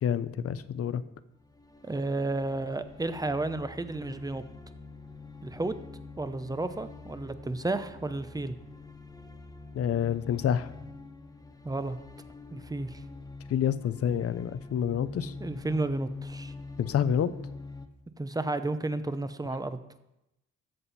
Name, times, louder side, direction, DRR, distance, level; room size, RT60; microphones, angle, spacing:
voice 1, 0.0-1.0 9.7-10.7 13.5-15.3 16.8-17.3, left 8 dB, 50° left, 15 dB, 0.7 m, -28 dB
sound 1, 1.3-17.9, left 3 dB, 10° left, 1.0 m, -45 dB
voice 2, 1.8-4.4 5.4-5.7 6.2-8.6 11.6-12.0 12.5-13.0 15.4-16.5 18.2-19.8, right 2 dB, 10° right, 11 dB, 0.8 m, -32 dB
14.0 x 7.7 x 4.2 m, 0.90 s
cardioid pair, 90°, 30 cm